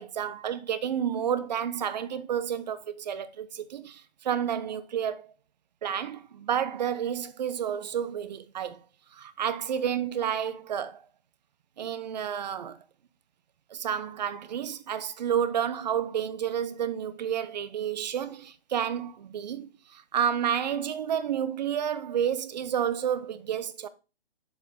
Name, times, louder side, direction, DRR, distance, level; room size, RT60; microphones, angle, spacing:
voice 1, 0.0-5.3 5.8-8.8 9.1-11.0 11.8-12.8 13.7-23.9, right 9 dB, 40° right, 0.7 m, -30 dB
7.2 x 5.3 x 3.7 m
hypercardioid pair, 155°, 32 cm